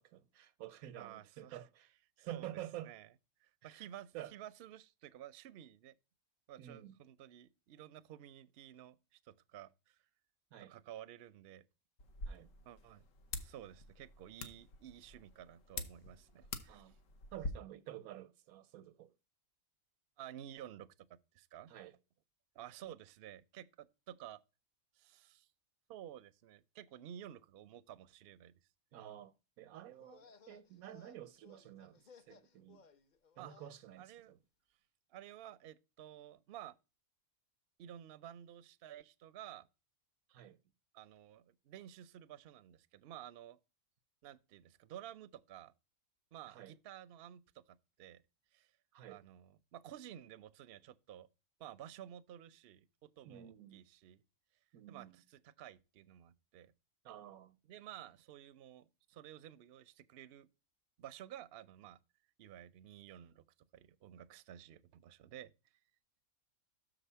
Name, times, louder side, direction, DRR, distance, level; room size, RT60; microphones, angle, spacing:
voice 1, 0.0-1.9 2.2-2.9 3.6-3.9 4.1-4.3 6.6-6.9 10.5-10.7 12.2-12.5 16.7-17.0 17.3-19.1 21.7-21.9 28.9-32.0 32.3-32.8 33.4-34.4 40.3-40.6 46.5-46.7 48.9-49.2 53.2-53.8 54.7-55.2 57.0-57.6, right 12 dB, 90° right, 1.1 m, -50 dB
voice 2, 1.0-1.6 2.2-2.5 2.8-3.1 3.4-6.0 6.5-10.0 10.6-11.6 12.6-13.1 13.3-16.9 20.2-21.7 22.5-24.4 24.9-25.5 25.9-28.5 33.4-33.6 34.0-34.3 35.1-36.8 37.8-39.7 40.9-43.6 44.2-45.7 46.3-48.2 48.5-48.7 49.1-51.3 51.6-54.2 54.9-56.7 57.6-60.5 61.0-62.0 62.4-63.4 63.7-65.5, right 11 dB, 60° right, 0.7 m, -53 dB
sound 1, 12.0-17.5, left 3 dB, 70° left, 1.3 m, -47 dB
sound 2, 29.9-33.8, left 5 dB, 45° left, 0.6 m, -62 dB
6.6 x 5.0 x 5.5 m
omnidirectional pair, 1.4 m